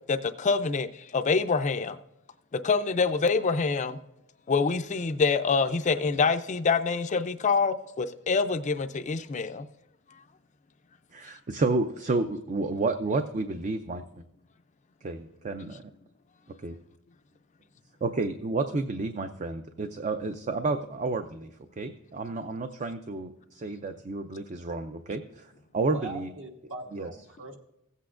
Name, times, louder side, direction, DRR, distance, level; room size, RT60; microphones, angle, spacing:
voice 1, 0.1-2.0 2.5-4.0 4.5-9.7, left 4 dB, 35° left, 0.4 m, -26 dB
voice 2, 11.1-14.0 15.0-15.8 16.6-16.7 18.0-21.5 21.8-26.3 26.9-27.1, right 3 dB, 35° right, 0.4 m, -31 dB
voice 3, 25.9-27.6, right 3 dB, 60° right, 1.3 m, -41 dB
16.0 x 8.2 x 2.5 m
head